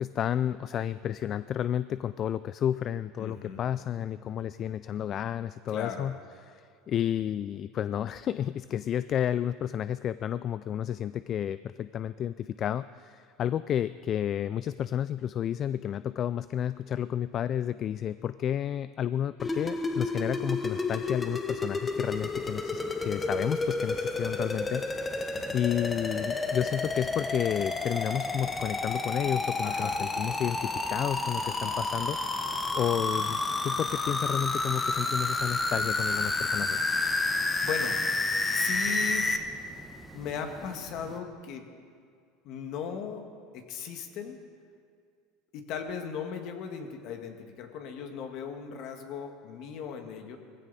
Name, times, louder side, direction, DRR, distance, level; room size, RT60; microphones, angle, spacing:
voice 1, 0.0-6.1 6.5-36.9, left 10 dB, 40° left, 15 dB, 0.3 m, -31 dB
voice 2, 3.2-3.6 5.7-6.1 25.3-25.6 29.6-30.0 31.6-32.0 37.6-38.0 38.5-39.4 40.1-41.7 42.4-44.4 45.5-50.4, left 7 dB, 60° left, 5 dB, 1.8 m, -37 dB
sound 1, 19.4-39.4, left 3 dB, 15° left, 1.1 m, -30 dB
sound 2, 21.9-41.2, right 2 dB, 10° right, 1.3 m, -48 dB
20.5 x 15.5 x 4.2 m, 2.2 s
supercardioid pair, 120°, 0 cm